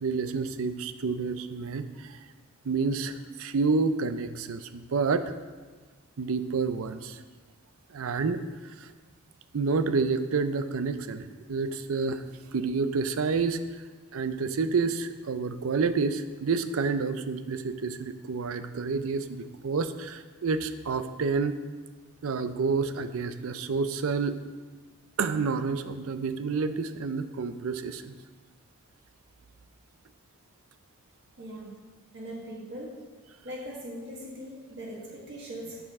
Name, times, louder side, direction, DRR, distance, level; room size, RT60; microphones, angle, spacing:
voice 1, 0.0-2.2 2.6-5.3 6.2-7.2 7.9-8.4 8.8-8.9 9.5-12.2 12.5-13.8 14.1-21.6 22.2-24.4 25.2-28.2, right 4 dB, 65° right, 11 dB, 0.5 m, -29 dB
voice 2, 31.4-31.7 32.1-33.0 33.4-35.8, equal, 50° right, -4 dB, 1.6 m, -40 dB
7.9 x 6.7 x 3.6 m, 1.3 s
head